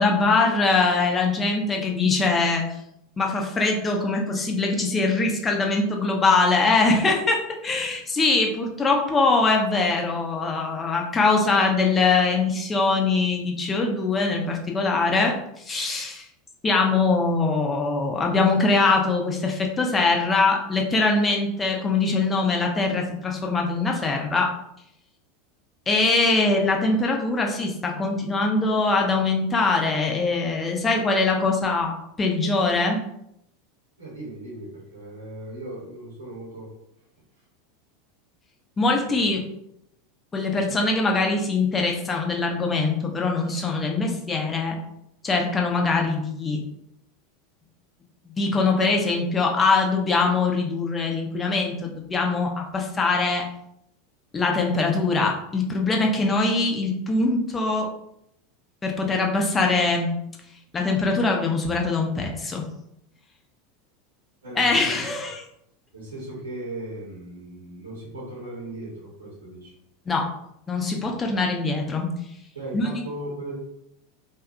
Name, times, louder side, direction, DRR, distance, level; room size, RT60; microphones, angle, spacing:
voice 1, 0.0-2.6 3.2-16.2 16.6-24.5 25.9-33.0 38.8-39.4 40.3-44.8 45.2-46.6 48.4-53.5 54.3-57.9 58.8-60.1 60.7-62.6 64.6-65.4 70.1-70.3 70.7-72.1 72.7-73.0, left 3 dB, 20° left, 1 dB, 0.6 m, -22 dB
voice 2, 34.0-36.7 39.1-39.2 64.4-65.1 65.9-69.7 72.5-73.5, right 1 dB, 85° right, -4 dB, 1.0 m, -37 dB
2.7 x 2.3 x 2.4 m, 0.78 s
figure-of-eight pair, 85°, 0 cm